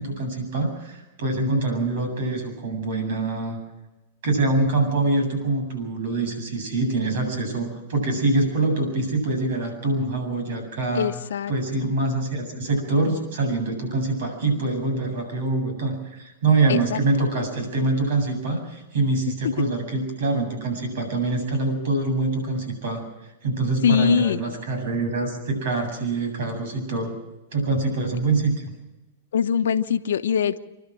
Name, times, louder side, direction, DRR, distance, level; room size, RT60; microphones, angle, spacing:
voice 1, 0.0-3.6 4.2-11.1 11.5-23.0 23.4-27.2 27.5-28.7, right 3 dB, 70° right, 6 dB, 7.8 m, -25 dB
voice 2, 11.0-11.5 11.8-11.9 16.7-17.0 19.4-19.5 23.8-24.4 29.3-30.6, left 7 dB, 80° left, 9 dB, 1.0 m, -22 dB
28.5 x 12.0 x 7.6 m, 1.0 s
hypercardioid pair, 120°, 0 cm